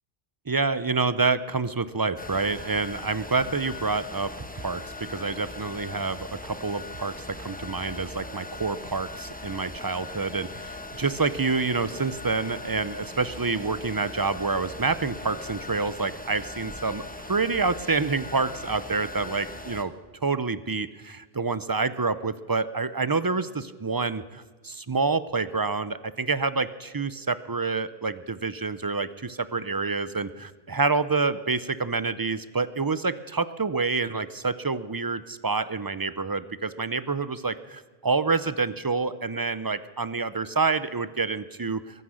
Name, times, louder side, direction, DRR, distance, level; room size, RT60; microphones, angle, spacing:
voice 1, 0.5-4.3 4.6-19.9 20.2-41.8, right 4 dB, 30° right, 15 dB, 0.4 m, -27 dB
sound 1, 2.2-19.8, left 2 dB, 10° left, 1.0 m, -40 dB
22.5 x 9.7 x 6.3 m, 1.4 s
omnidirectional pair, 1.0 m